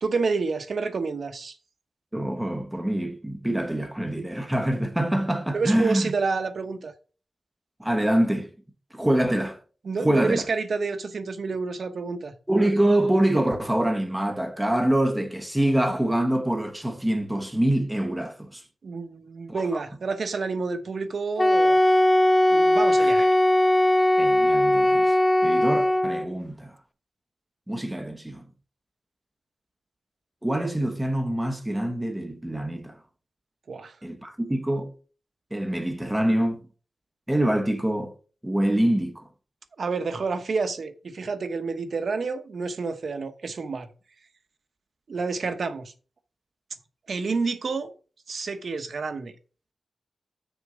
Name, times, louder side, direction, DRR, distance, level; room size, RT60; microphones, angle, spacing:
voice 1, 0.0-1.5 5.5-6.9 9.8-12.3 18.8-21.8 22.5-23.3 33.7-34.0 39.8-43.9 45.1-45.9 47.1-47.9 48.3-49.3, right 4 dB, 65° right, 0.9 m, -29 dB
voice 2, 2.1-6.1 7.8-8.5 8.9-9.6 10.0-10.4 12.5-18.6 19.5-19.8 23.0-23.3 24.2-25.2 25.4-26.7 27.7-28.5 30.4-33.0 34.0-34.9 35.5-36.6 37.3-38.1 38.4-39.3, right 1 dB, 10° right, 1.0 m, -25 dB
Wind instrument woodwind instrument, 21.4-26.3, left 1 dB, 20° left, 0.5 m, -19 dB
6.6 x 4.5 x 6.2 m
wide cardioid pair, 120°, 0 cm